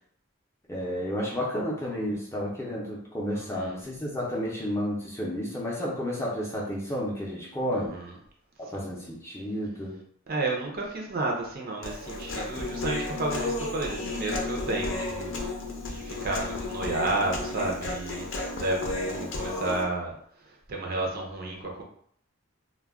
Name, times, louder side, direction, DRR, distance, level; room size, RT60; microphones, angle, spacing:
voice 1, 0.7-8.0 8.6-10.0, equal, 15° left, -4 dB, 0.5 m, -31 dB
voice 2, 3.3-3.8 7.7-8.1 8.7-8.9 10.3-15.5 15.8-18.3 18.6-20.1 20.5-21.8, right 2 dB, 45° right, 0 dB, 0.5 m, -32 dB
Human voice, 11.8-19.8, left 2 dB, 70° left, 0.5 m, -33 dB
2.2 x 2.1 x 3.4 m, 0.65 s
head